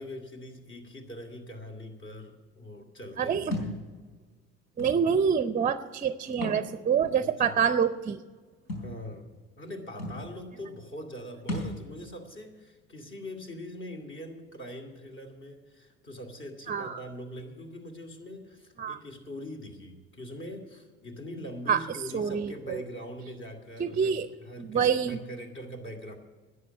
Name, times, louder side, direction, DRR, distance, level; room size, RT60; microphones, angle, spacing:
voice 1, 0.0-3.8 7.2-7.6 8.8-26.2, equal, 35° left, 5 dB, 2.6 m, -42 dB
voice 2, 3.2-3.5 4.8-8.2 16.7-17.0 18.8-19.0 21.7-21.8 22.1-22.8 23.8-24.3 24.6-25.2, right 7 dB, 25° right, 12 dB, 0.6 m, -26 dB
Thump thud, 3.5-3.8 4.8-4.9 6.3-6.6 7.0-7.1 8.7-8.9 9.7-9.8 10.0-10.2 11.5-11.8, left 1 dB, 85° left, 4.2 m, -33 dB
11.0 x 8.7 x 9.5 m, 1.4 s
supercardioid pair, 85°, 33 cm